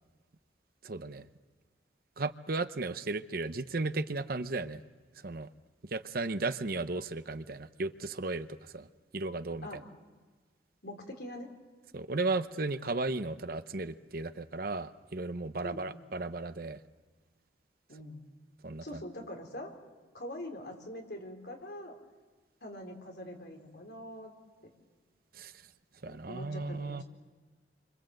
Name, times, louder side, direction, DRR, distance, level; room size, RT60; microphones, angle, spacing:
voice 1, 0.8-1.3 2.2-4.8 5.2-5.5 5.9-8.9 9.1-9.8 11.9-16.8 18.6-19.0 25.3-25.5 26.0-27.0, right 3 dB, 50° right, 11 dB, 0.8 m, -35 dB
voice 2, 10.8-11.5 15.6-15.9 17.9-18.2 18.8-19.7 20.1-22.0 22.6-24.3 24.6-24.7 26.1-27.0, left 1 dB, 60° left, 2 dB, 4.2 m, -43 dB
28.5 x 25.5 x 7.9 m, 1.3 s
head